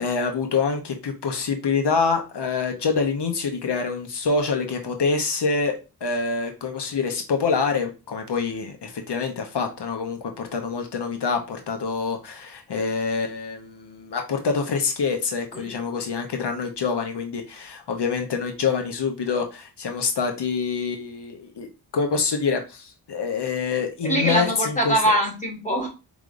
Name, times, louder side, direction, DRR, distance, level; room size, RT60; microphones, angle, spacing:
voice 1, 0.0-21.7 21.9-24.9, left 5 dB, 85° left, 4 dB, 0.8 m, -26 dB
voice 2, 24.0-25.9, right 1 dB, 20° left, 1 dB, 1.5 m, -23 dB
4.8 x 3.4 x 2.5 m, 0.30 s
wide cardioid pair, 75°, 40 cm